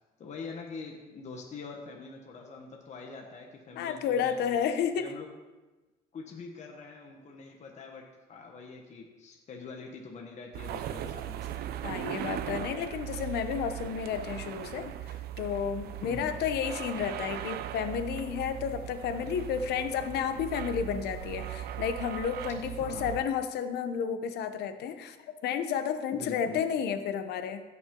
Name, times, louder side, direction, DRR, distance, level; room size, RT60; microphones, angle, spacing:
voice 1, 0.2-4.6 4.9-5.3 6.1-8.0 8.3-11.6 16.0-16.3 22.8-23.1 26.1-26.6, left 4 dB, 45° left, 1 dB, 1.3 m, -44 dB
voice 2, 3.8-5.1 11.8-25.2 25.4-27.6, left 7 dB, 75° left, 9 dB, 0.9 m, -31 dB
sound 1, 10.5-23.2, right 11 dB, 70° right, 0.6 m, -38 dB
16.0 x 6.0 x 3.8 m, 1.2 s
cardioid pair, 110°, 17 cm